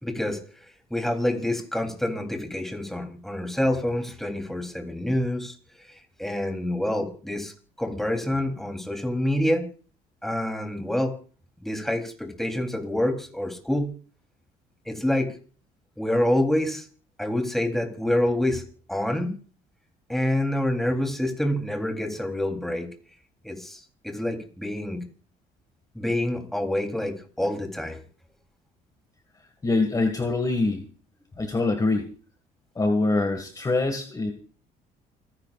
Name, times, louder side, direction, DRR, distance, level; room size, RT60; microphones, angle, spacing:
voice 1, 0.0-0.4 0.9-5.5 6.2-7.5 7.8-9.6 10.2-11.1 11.6-13.9 14.9-15.3 16.0-16.8 17.2-18.6 18.9-19.3 20.1-22.9 23.4-25.0 25.9-28.0, left 1 dB, ahead, 4 dB, 3.4 m, -27 dB
voice 2, 29.6-30.8 31.4-32.1 32.8-34.3, left 2 dB, 20° left, 5 dB, 1.9 m, -24 dB
28.5 x 11.0 x 2.5 m, 0.41 s
cardioid pair, 110°, 17 cm